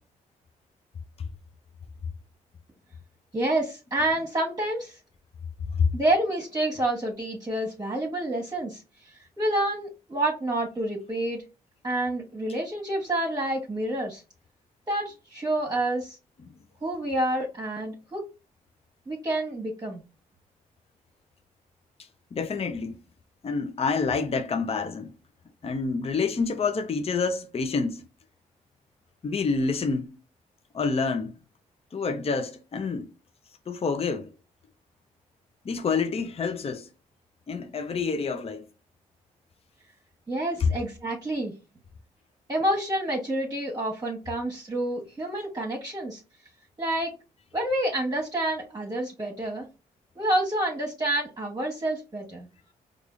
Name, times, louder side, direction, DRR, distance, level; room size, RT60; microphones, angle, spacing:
voice 1, 3.3-5.0 5.9-11.4 11.8-14.2 14.9-16.2 16.8-18.3 19.1-20.0 40.3-41.5 42.5-46.2 46.8-47.1 47.5-49.7 50.1-52.5, right 1 dB, 25° right, 1.2 m, -28 dB
voice 2, 22.0-23.0 23.4-25.1 25.6-28.0 29.2-30.1 30.7-31.3 31.9-33.1 33.7-34.3 35.6-36.9 37.5-38.7 40.6-40.7, left 4 dB, 35° left, 0.6 m, -27 dB
4.7 x 2.4 x 2.4 m
hypercardioid pair, 45°, 16 cm